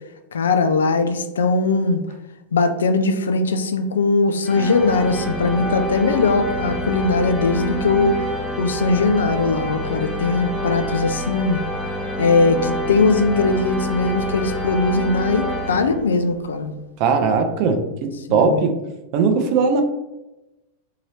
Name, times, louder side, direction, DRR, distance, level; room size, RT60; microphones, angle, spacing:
voice 1, 0.3-2.0 2.5-8.3 8.6-11.6 12.2-16.7 18.3-18.7, left 3 dB, 75° left, 8 dB, 0.3 m, -20 dB
sound 1, 4.4-16.4, right 1 dB, 5° right, 0.6 m, -27 dB
voice 2, 17.0-18.8 19.1-19.8, right 5 dB, 45° right, 5 dB, 0.5 m, -19 dB
2.8 x 2.6 x 3.2 m, 1.0 s
figure-of-eight pair, 95°, 0 cm